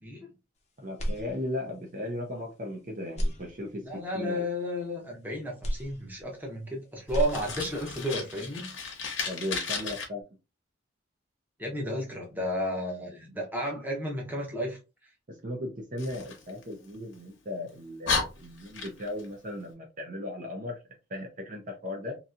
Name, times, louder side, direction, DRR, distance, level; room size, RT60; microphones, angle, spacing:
voice 1, 0.8-4.4 9.3-10.2 15.3-20.8 21.1-22.2, left 1 dB, 40° right, 0.6 m, -37 dB
sound 1, 0.9-1.9 2.3-2.4 3.0-4.1 5.6-6.7 7.0-7.9, equal, 35° left, 0.6 m, -34 dB
voice 2, 3.8-8.7 11.6-14.8, equal, 10° right, 0.8 m, -32 dB
Fire, 7.1-10.0 16.0-17.2 17.7-17.8 18.0-19.3, left 4 dB, 75° left, 0.9 m, -34 dB
2.8 x 2.7 x 2.4 m
head